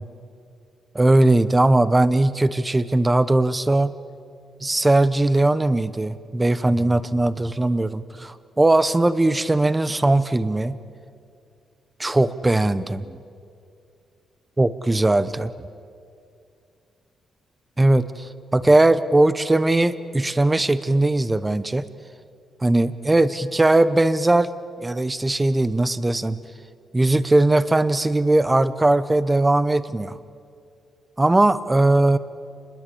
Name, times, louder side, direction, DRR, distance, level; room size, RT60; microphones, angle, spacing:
voice 1, 0.9-3.9 4.6-10.8 12.0-13.2 14.6-15.5 17.8-21.8 22.6-24.5 24.8-26.4 26.9-30.2 31.2-32.2, right 2 dB, 15° right, 14 dB, 0.8 m, -19 dB
28.5 x 21.0 x 8.5 m, 2.4 s
wide cardioid pair, 155°, 0 cm